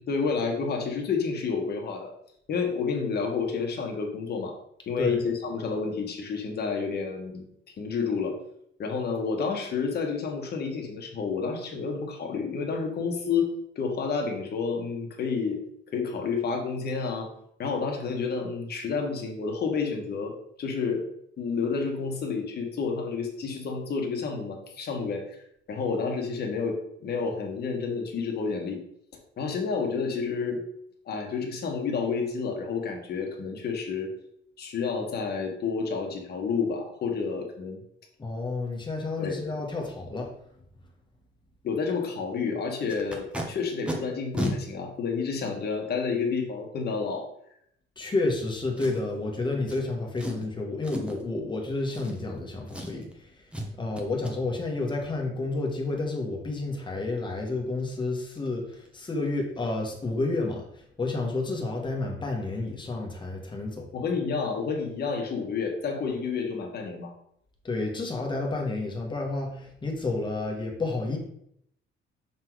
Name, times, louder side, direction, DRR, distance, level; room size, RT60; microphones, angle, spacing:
voice 1, 0.0-2.1 2.5-4.6 4.9-7.4 7.8-8.4 8.8-15.6 15.9-17.3 17.6-20.3 20.6-21.0 21.4-25.4 25.7-28.8 29.4-30.6 31.0-34.1 34.6-37.8 39.2-39.4 41.6-47.2 63.9-67.1, left 5 dB, 50° left, 2 dB, 1.5 m, -30 dB
voice 2, 38.2-40.3 48.0-53.4 53.8-63.9 67.6-71.2, left 2 dB, 20° left, 1 dB, 1.5 m, -30 dB
Packing tape duct tape, 42.9-43.4 43.9-44.0 44.3-44.5 45.3-45.4 48.8-49.2 49.7-49.8 50.2-50.5 50.8-51.2 51.9-52.4 52.7-53.1 53.5-53.7 54.0-54.3 57.4-57.5 57.8-58.0 58.3-58.5 58.7-59.0 59.3-59.4, equal, 5° right, 1.1 m, -34 dB
6.5 x 4.0 x 4.7 m, 0.72 s
cardioid pair, 145°, 21 cm